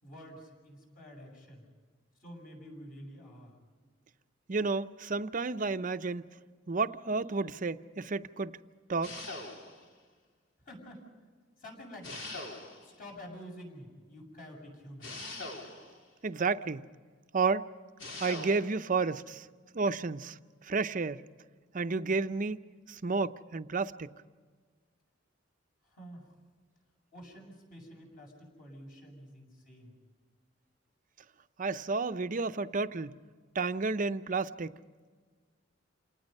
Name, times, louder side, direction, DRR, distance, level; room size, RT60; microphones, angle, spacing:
voice 1, 0.0-1.7 2.2-3.6 10.6-11.0 11.6-12.2 12.8-15.3 25.8-26.4 27.1-30.0, equal, 45° left, 7.3 m, -49 dB
voice 2, 4.5-6.2 6.7-8.5 8.9-9.1 16.2-16.9 17.3-17.7 18.2-19.5 19.7-20.4 20.6-21.2 21.7-24.1 31.6-33.2 33.5-34.8, right 4 dB, 45° right, 0.6 m, -31 dB
sound 1, 9.0-9.9 12.0-13.0 15.0-16.0 18.0-18.8, left 2 dB, 75° left, 3.7 m, -42 dB
28.5 x 19.0 x 5.5 m
head